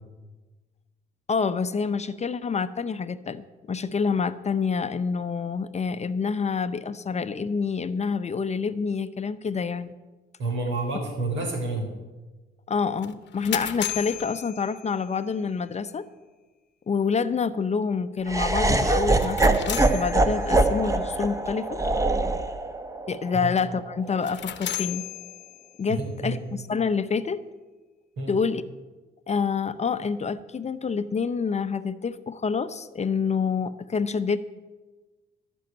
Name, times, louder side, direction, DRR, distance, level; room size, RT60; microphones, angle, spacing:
voice 1, 1.3-9.9 12.7-16.1 16.9-21.8 23.1-25.1 25.8-27.4 28.3-28.6 29.3-34.4, left 5 dB, 35° left, 12 dB, 0.6 m, -27 dB
voice 2, 10.4-11.9 23.3-23.5 25.9-26.4 28.2-28.3, right 2 dB, 75° right, 3 dB, 4.1 m, -29 dB
sound 1, 13.0-15.3 19.0-20.7 24.1-25.9, left 12 dB, 65° left, 0.9 m, -35 dB
Laughter, 18.3-24.4, right 2 dB, 15° right, 1.1 m, -24 dB
14.5 x 6.3 x 8.8 m, 1.2 s
cardioid pair, 90°, 20 cm